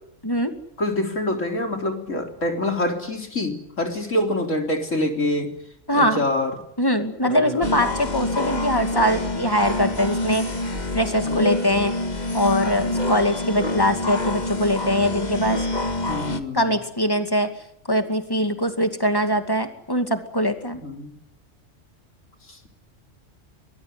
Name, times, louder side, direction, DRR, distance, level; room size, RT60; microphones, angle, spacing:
voice 1, 0.8-5.5 5.9-6.6 7.2-7.7 11.2-11.4 16.1-16.7 20.8-21.1 22.5-22.6, left 1 dB, 80° left, 3 dB, 4.2 m, -26 dB
voice 2, 5.9-6.2 6.8-10.5 10.9-11.9 12.3-15.6 16.5-17.5 17.9-20.8, equal, 20° left, 6 dB, 2.4 m, -22 dB
sound 1, 7.6-16.4, left 2 dB, 35° left, 2.0 m, -26 dB
23.5 x 20.5 x 9.5 m, 0.75 s
omnidirectional pair, 1.3 m